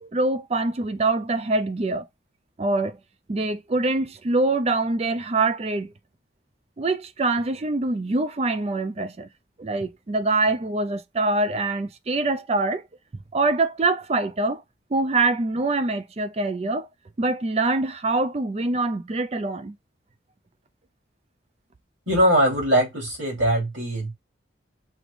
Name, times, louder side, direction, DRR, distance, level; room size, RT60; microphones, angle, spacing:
voice 1, 0.0-2.1 2.6-3.0 3.3-5.9 6.8-9.3 9.6-12.9 13.1-14.6 14.9-16.9 17.2-19.8, right 2 dB, 35° right, 0.4 m, -24 dB
voice 2, 22.1-24.1, equal, 90° right, 3.4 m, -21 dB
5.9 x 3.3 x 2.5 m
head